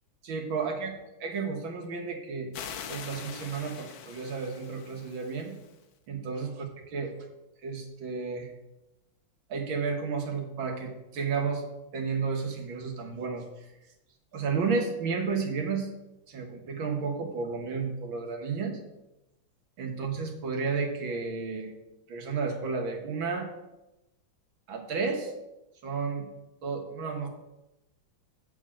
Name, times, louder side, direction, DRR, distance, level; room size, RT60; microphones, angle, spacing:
voice 1, 0.2-0.9 1.2-2.5 2.9-5.6 6.1-7.1 7.6-8.5 9.5-11.6 11.9-13.5 14.3-15.9 16.3-18.8 19.8-21.7 22.1-23.5 24.7-25.3 25.8-26.3 26.6-27.3, right 5 dB, 80° right, 3 dB, 2.0 m, -32 dB
sound 1, 2.5-5.8, left 8 dB, 80° left, 1.6 m, -43 dB
7.8 x 4.8 x 7.3 m, 0.94 s
omnidirectional pair, 2.2 m